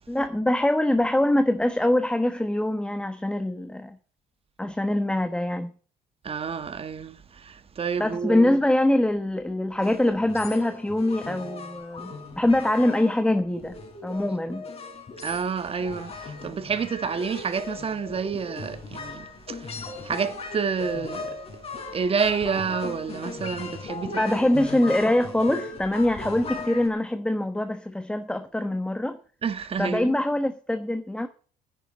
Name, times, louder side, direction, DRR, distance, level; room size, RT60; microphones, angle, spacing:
voice 1, 0.1-4.0 4.6-5.7 8.0-13.8 14.0-14.6 24.1-29.2 29.8-31.3, left 1 dB, 5° left, 1.1 m, -24 dB
voice 2, 6.2-8.6 15.2-21.3 21.9-24.2 29.4-30.1, right 6 dB, 35° right, 1.4 m, -29 dB
sound 1, 9.8-26.9, left 3 dB, 35° left, 3.9 m, -38 dB
10.5 x 9.2 x 9.3 m
cardioid pair, 110°, 17 cm